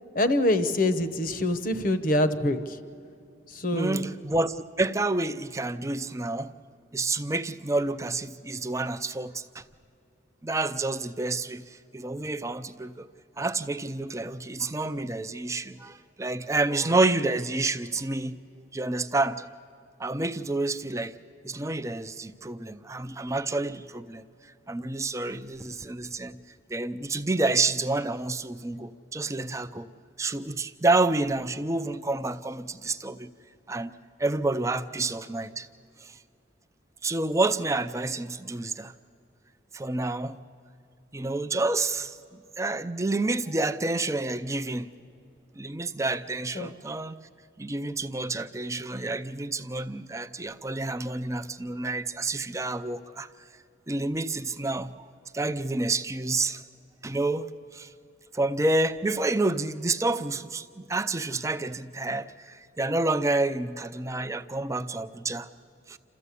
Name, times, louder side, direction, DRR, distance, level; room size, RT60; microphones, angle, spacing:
voice 1, 0.1-2.6 3.6-4.1 46.6-46.7, left 1 dB, 45° left, 11 dB, 1.0 m, -25 dB
voice 2, 3.7-6.5 6.9-9.6 10.4-13.1 13.4-19.5 20.0-21.1 21.4-26.4 26.7-29.9 30.2-33.3 33.7-33.9 34.2-35.7 36.0-36.2 37.0-38.9 39.7-40.4 41.1-44.9 45.5-47.2 47.6-53.3 53.9-55.1 55.3-56.6 57.0-57.5 57.7-57.9 58.3-65.5 65.9-66.0, right 2 dB, 15° right, 10 dB, 0.5 m, -29 dB
28.0 x 14.0 x 8.4 m, 2.5 s
head